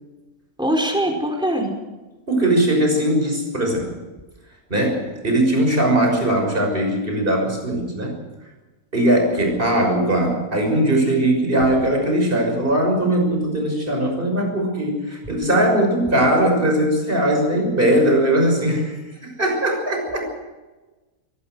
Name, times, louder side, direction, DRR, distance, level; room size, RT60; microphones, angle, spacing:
voice 1, 0.6-1.7, equal, 5° right, 1 dB, 4.8 m, -21 dB
voice 2, 2.3-3.9 4.7-8.1 8.9-20.3, right 1 dB, 35° right, 2 dB, 6.5 m, -20 dB
23.0 x 18.5 x 6.4 m, 1.2 s
omnidirectional pair, 1.6 m